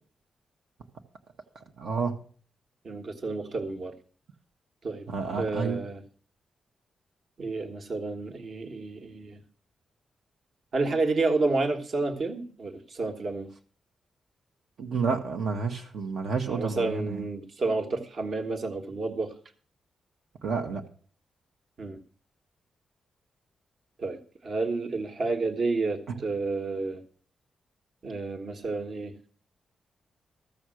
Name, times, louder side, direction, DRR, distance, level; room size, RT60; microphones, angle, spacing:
voice 1, 1.8-2.1 5.1-5.8 14.8-17.2 20.4-20.8 26.1-26.2, right 5 dB, 65° right, 2 dB, 1.3 m, -30 dB
voice 2, 2.8-3.9 4.8-6.0 7.4-9.4 10.7-13.5 16.5-19.3 21.8-22.0 24.0-24.2 24.4-27.0 28.0-29.1, right 3 dB, 45° right, 5 dB, 1.4 m, -30 dB
14.0 x 7.2 x 6.3 m, 0.43 s
wide cardioid pair, 160°, 0 cm